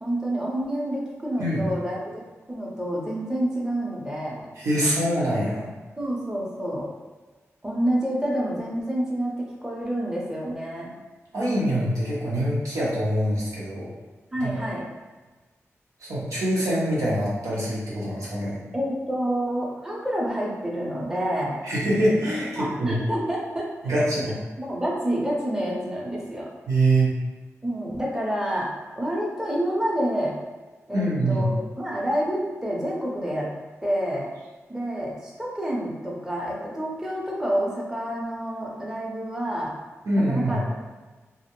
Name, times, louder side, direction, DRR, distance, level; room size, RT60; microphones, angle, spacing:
voice 1, 0.0-2.2 2.5-4.5 6.0-6.9 7.6-10.9 14.3-14.9 18.7-21.6 22.6-24.0 24.6-26.5 27.6-28.7 29.0-30.4 30.9-33.5 33.8-34.3 34.7-39.7 40.2-40.7, right 1 dB, 10° right, -3 dB, 0.6 m, -28 dB
voice 2, 4.6-5.7 11.3-13.9 14.4-14.5 16.0-18.6 21.6-23.0 23.8-24.3 26.7-27.2 30.9-31.5 40.1-40.6, right 1 dB, 90° right, -7 dB, 0.8 m, -24 dB
2.4 x 2.0 x 2.9 m, 1.3 s
wide cardioid pair, 80°, 5 cm